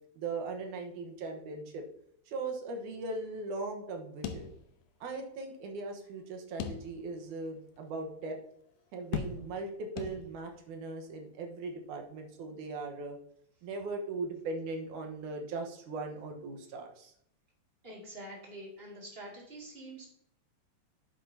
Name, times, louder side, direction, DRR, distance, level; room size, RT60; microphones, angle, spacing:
voice 1, 0.1-1.8 2.3-4.5 5.0-8.4 8.9-13.2 13.6-17.1, right 3 dB, 85° right, 3 dB, 2.7 m, -39 dB
sound 1, 4.2-5.1 5.4-5.5 6.6-7.2 7.8-7.9 9.1-9.7 10.0-10.6, left 7 dB, 85° left, 2.2 m, -39 dB
voice 2, 17.8-20.1, right 1 dB, 20° right, -3 dB, 2.2 m, -46 dB
9.2 x 7.8 x 2.8 m, 0.69 s
omnidirectional pair, 3.5 m